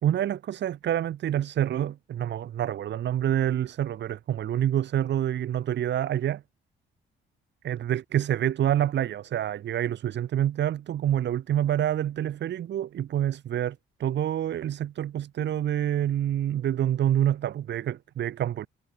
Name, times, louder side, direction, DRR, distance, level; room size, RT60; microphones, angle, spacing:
voice 1, 0.0-6.4 7.6-18.7, right 11 dB, 60° right, 1.2 m, -27 dB
cardioid pair, 90°, 20 cm